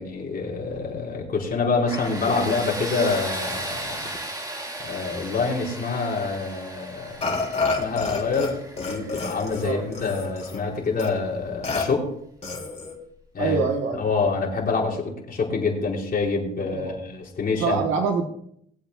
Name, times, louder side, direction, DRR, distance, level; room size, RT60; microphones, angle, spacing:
voice 1, 0.0-4.1 4.8-12.1 13.3-13.6 13.9-17.8, left 4 dB, 50° left, -3 dB, 4.5 m, -26 dB
Tools, 1.9-10.6, right 1 dB, 20° right, 1.9 m, -36 dB
Burping eructation, 7.2-8.5 8.8-10.6 11.0-11.1 11.6-11.8 12.4-13.0, left 3 dB, 35° left, 3.5 m, -28 dB
voice 2, 13.4-14.0 16.7-17.0 17.6-18.3, right 5 dB, 90° right, 3 dB, 1.2 m, -24 dB
22.0 x 8.0 x 2.3 m, 0.69 s
cardioid pair, 100°, 20 cm